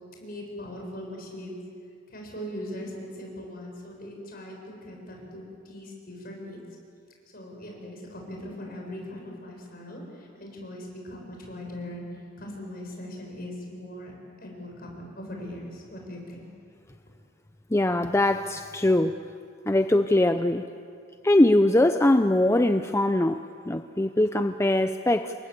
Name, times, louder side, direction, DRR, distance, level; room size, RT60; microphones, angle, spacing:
voice 1, 0.2-1.6 2.1-6.6 7.3-12.0 12.4-14.1 14.4-16.5, left 1 dB, 50° left, 0 dB, 7.2 m, -40 dB
voice 2, 17.7-19.2 19.7-20.6 21.2-25.3, left 1 dB, 15° left, 8 dB, 0.6 m, -22 dB
29.5 x 23.5 x 8.2 m, 2.4 s
head